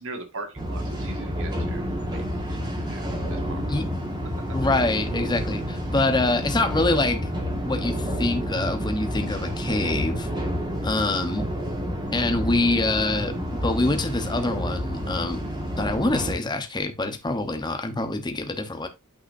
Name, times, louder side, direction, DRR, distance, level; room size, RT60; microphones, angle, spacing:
voice 1, 0.0-3.6, right 3 dB, 65° right, 1.8 m, -40 dB
sound 1, 0.6-16.3, equal, 20° right, 1.7 m, -29 dB
voice 2, 4.5-7.2 7.6-10.3 10.8-11.5 12.1-15.4 15.8-18.9, left 2 dB, 20° left, 0.9 m, -25 dB
8.7 x 5.7 x 2.6 m
head